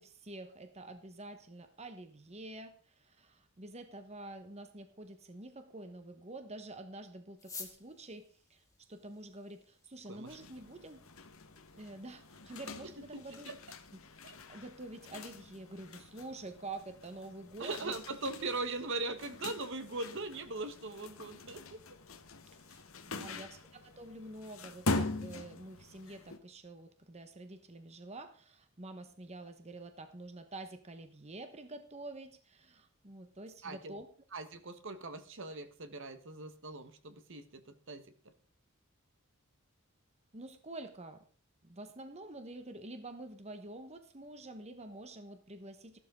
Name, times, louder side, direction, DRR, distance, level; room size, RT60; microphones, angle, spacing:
voice 1, 0.0-11.0 11.7-13.5 13.9-14.0 14.5-17.9 22.5-34.1 40.3-41.2 41.6-46.0, right 2 dB, 30° right, 8 dB, 1.2 m, -48 dB
sound 1, 7.3-22.1, left 4 dB, 15° left, 2.4 m, -58 dB
sound 2, 10.3-26.4, left 2 dB, 70° left, 1.4 m, -43 dB
voice 2, 17.6-21.8 22.7-22.8 23.1-23.5 33.6-33.9 34.3-38.0, right 3 dB, 60° right, 9 dB, 1.4 m, -40 dB
14.5 x 12.0 x 3.8 m, 0.40 s
head